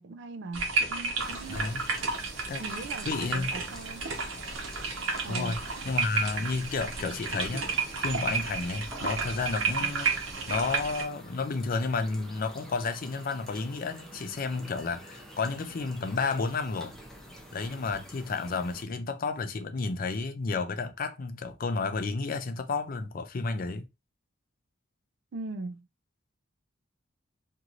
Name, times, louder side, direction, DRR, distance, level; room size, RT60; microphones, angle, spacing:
voice 1, 0.0-1.6 2.6-3.1 3.3-4.0 5.2-5.6 25.3-25.9, right 3 dB, 65° right, 0.4 m, -40 dB
sound 1, 0.5-11.0, right 4 dB, 85° right, 1.0 m, -32 dB
sound 2, 1.2-18.8, equal, ahead, 0.6 m, -48 dB
voice 2, 1.5-1.9 2.5-2.6 3.1-3.5 5.3-5.6 5.8-7.6 8.0-17.0 17.5-23.8, left 4 dB, 45° left, 0.4 m, -31 dB
3.0 x 2.6 x 2.5 m
head